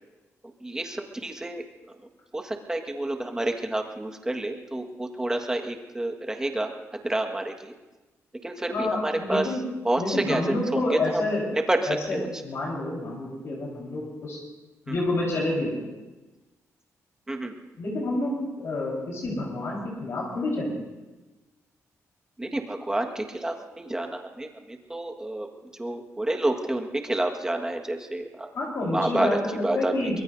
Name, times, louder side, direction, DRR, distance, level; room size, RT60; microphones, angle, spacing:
voice 1, 0.6-1.6 2.3-6.7 7.0-7.7 8.4-9.5 9.8-11.2 11.5-12.4 14.9-15.0 17.3-17.5 22.4-25.5 25.8-28.5 28.9-29.9, right 1 dB, 10° right, 3 dB, 1.5 m, -29 dB
voice 2, 8.7-9.6 10.0-11.4 11.9-14.4 14.9-15.8 17.8-20.9 28.6-30.2, left 2 dB, 55° left, -3 dB, 4.2 m, -29 dB
24.0 x 22.5 x 2.7 m, 1.1 s
wide cardioid pair, 140°, 5 cm